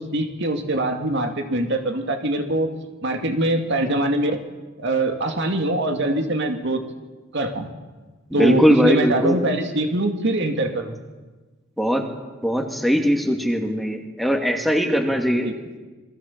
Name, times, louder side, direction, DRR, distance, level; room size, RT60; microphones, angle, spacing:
voice 1, 0.0-2.7 3.0-4.4 4.8-6.8 7.3-7.7 8.3-11.0 15.4-15.5, right 1 dB, 60° right, 5 dB, 2.6 m, -23 dB
voice 2, 8.4-9.4 11.8-12.0 12.4-15.5, equal, ahead, 3 dB, 2.3 m, -20 dB
27.5 x 21.5 x 7.5 m, 1.3 s
head